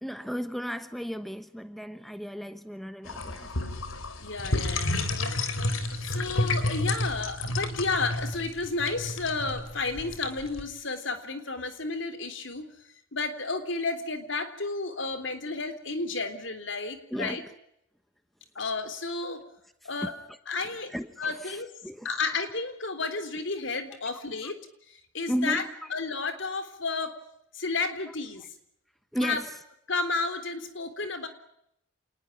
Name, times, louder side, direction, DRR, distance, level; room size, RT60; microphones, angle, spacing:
voice 1, 0.0-3.7 17.1-17.5 20.0-20.1 20.9-22.1 24.0-24.5 25.3-25.7 29.1-29.5, equal, ahead, 1.1 m, -34 dB
sound 1, 3.1-10.6, left 2 dB, 80° left, 3.5 m, -31 dB
voice 2, 4.2-5.1 5.7-12.7 13.1-17.4 18.6-19.4 19.8-20.1 20.5-21.7 22.0-24.6 24.9-25.6 25.9-27.2 27.5-28.5 29.2-29.4 29.9-31.3, left 3 dB, 65° left, 3.6 m, -32 dB
27.5 x 20.0 x 10.0 m
head